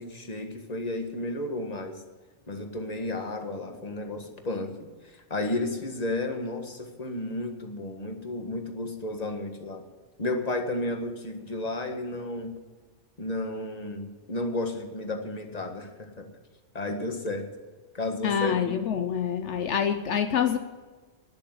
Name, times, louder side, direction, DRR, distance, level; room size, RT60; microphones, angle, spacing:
voice 1, 0.0-2.0 2.5-4.9 5.3-9.8 10.2-12.5 13.2-16.3 16.7-17.5 17.9-18.6, left 2 dB, 35° left, 4 dB, 1.8 m, -32 dB
voice 2, 18.2-20.6, left 8 dB, 75° left, 8 dB, 1.1 m, -26 dB
20.0 x 6.9 x 8.0 m, 1.3 s
omnidirectional pair, 1.2 m